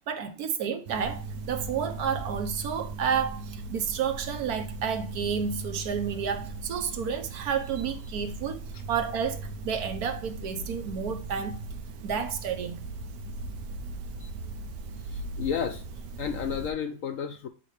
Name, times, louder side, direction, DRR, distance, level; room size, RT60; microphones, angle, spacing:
voice 1, 0.1-8.6 8.9-11.6 12.0-12.8, right 7 dB, 70° right, 1.3 m, -30 dB
sound 1, 0.9-16.7, right 3 dB, 90° right, 1.4 m, -38 dB
voice 2, 15.0-15.8 16.2-17.5, left 7 dB, 65° left, 0.8 m, -32 dB
7.6 x 4.3 x 3.1 m
omnidirectional pair, 1.8 m